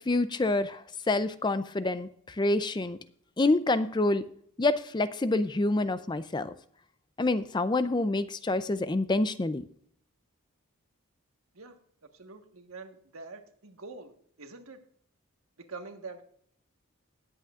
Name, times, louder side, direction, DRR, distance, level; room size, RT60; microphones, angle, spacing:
voice 1, 0.0-2.1 2.4-3.0 3.4-4.2 4.6-6.5 7.2-9.6, left 2 dB, 20° left, 13 dB, 0.4 m, -27 dB
voice 2, 12.0-14.8 15.6-16.2, right 3 dB, 85° right, 5 dB, 1.4 m, -45 dB
19.5 x 8.3 x 2.4 m, 0.63 s
head